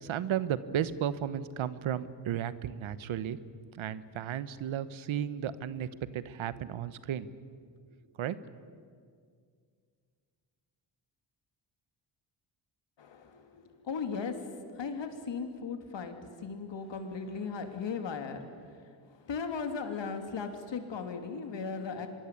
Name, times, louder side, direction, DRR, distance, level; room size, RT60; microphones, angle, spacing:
voice 1, 0.0-3.4 3.8-5.9 6.1-7.3 8.2-8.4, right 10 dB, 80° right, 15 dB, 1.2 m, -34 dB
voice 2, 13.0-18.5 19.1-22.1, left 5 dB, 65° left, 6 dB, 3.1 m, -37 dB
24.5 x 23.0 x 8.5 m, 2.1 s
cardioid pair, 95°, 47 cm